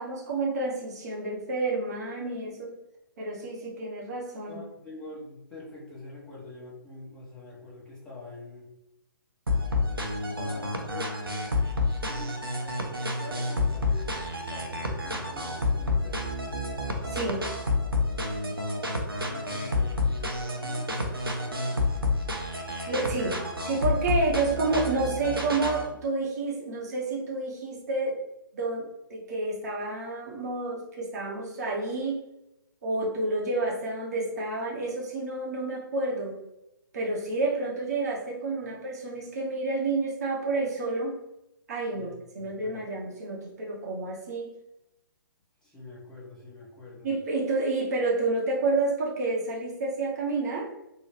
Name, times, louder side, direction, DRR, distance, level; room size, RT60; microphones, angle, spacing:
voice 1, 0.0-2.7 3.2-4.6 17.0-17.5 22.9-28.2 28.5-32.2 32.8-36.4 36.9-41.2 41.7-42.1 42.3-44.5 47.0-50.7, right 3 dB, 45° right, -3 dB, 0.7 m, -29 dB
voice 2, 4.5-8.7 10.1-11.4 12.0-16.3 19.2-21.8 38.6-38.7 41.9-42.8 45.6-47.1, left 2 dB, 5° left, -7 dB, 0.9 m, -45 dB
sound 1, 9.5-25.9, left 2 dB, 85° right, 0.6 m, -29 dB
2.8 x 2.1 x 3.1 m, 0.91 s
figure-of-eight pair, 130°, 12 cm